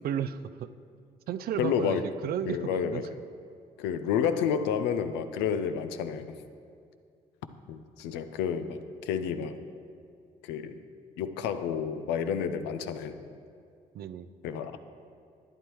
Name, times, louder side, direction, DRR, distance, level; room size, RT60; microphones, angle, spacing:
voice 1, 0.0-0.7 1.3-3.0 13.9-14.3, right 9 dB, 60° right, 12 dB, 0.4 m, -33 dB
voice 2, 1.6-2.1 2.5-3.1 3.8-6.4 7.7-9.6 10.4-10.8 11.2-13.2 14.4-14.8, left 7 dB, 75° left, 10 dB, 0.5 m, -30 dB
11.5 x 9.4 x 3.1 m, 2.3 s
hypercardioid pair, 50°, 18 cm